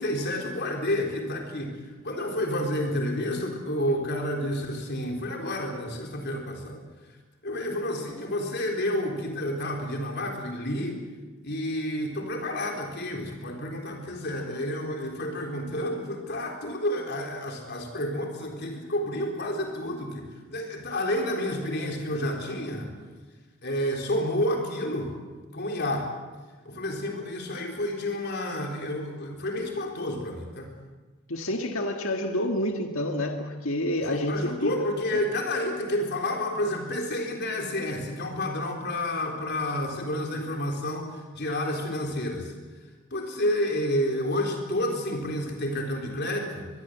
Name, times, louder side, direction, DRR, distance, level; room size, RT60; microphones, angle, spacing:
voice 1, 0.0-6.8 7.4-11.0 11.4-22.9 23.6-25.1 25.5-26.1 26.6-30.7 34.0-42.5 43.1-46.7, left 1 dB, 50° left, 2 dB, 4.0 m, -30 dB
voice 2, 31.3-35.2, left 1 dB, 70° left, 4 dB, 1.8 m, -29 dB
24.5 x 22.0 x 8.1 m, 1.3 s
head